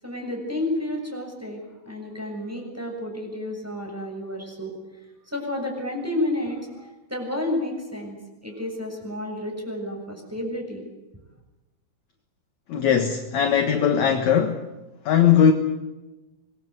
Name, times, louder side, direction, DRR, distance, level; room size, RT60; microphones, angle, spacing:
voice 1, 0.0-1.6 1.8-4.7 5.3-8.2 8.4-10.9, left 1 dB, 5° right, 6.8 m, -30 dB
voice 2, 12.7-14.6 15.1-15.5, left 8 dB, 60° left, 2.2 m, -19 dB
25.0 x 22.5 x 8.0 m
omnidirectional pair, 4.7 m